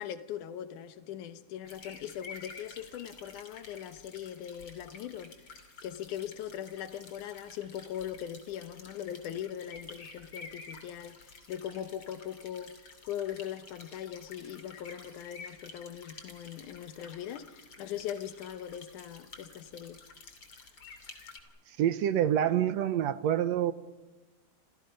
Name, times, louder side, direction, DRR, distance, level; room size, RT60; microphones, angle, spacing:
voice 1, 0.0-5.3 5.8-20.0, left 10 dB, 80° left, 2.6 m, -40 dB
sound 1, 1.6-21.4, left 4 dB, 45° left, 3.5 m, -51 dB
voice 2, 21.7-23.7, right 10 dB, 70° right, 1.9 m, -27 dB
28.5 x 27.0 x 5.4 m
omnidirectional pair, 3.5 m